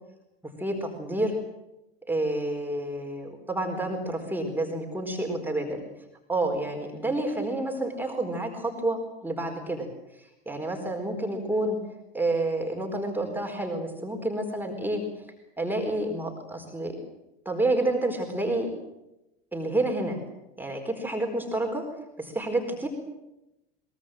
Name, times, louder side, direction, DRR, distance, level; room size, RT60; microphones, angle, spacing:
voice 1, 0.6-1.4 2.1-5.8 6.3-9.9 10.2-11.8 12.1-15.0 15.6-17.0 17.4-18.7 19.5-20.2 20.6-21.9 22.2-22.9, right 2 dB, 5° right, 2 dB, 4.3 m, -29 dB
23.0 x 21.5 x 7.7 m, 0.93 s
figure-of-eight pair, 75°, 31 cm